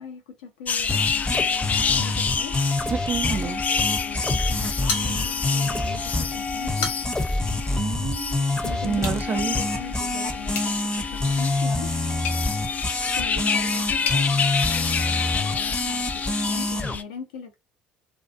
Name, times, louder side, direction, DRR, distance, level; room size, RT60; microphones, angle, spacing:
voice 1, 0.0-2.5 3.2-6.9 8.6-11.9 13.1-17.6, left 6 dB, 85° left, 0.7 m, -39 dB
sound 1, 0.7-17.0, left 6 dB, 35° left, 0.3 m, -29 dB
sound 2, 0.9-16.9, left 2 dB, 15° left, 0.7 m, -27 dB
voice 2, 2.9-3.6 7.7-8.5 8.8-9.6, right 6 dB, 40° right, 0.5 m, -28 dB
sound 3, 4.9-5.6 6.0-6.1 6.6-7.3 8.9-9.2 10.5-14.3, left 5 dB, 65° left, 1.1 m, -34 dB
2.6 x 2.4 x 2.5 m
hypercardioid pair, 60°, 5 cm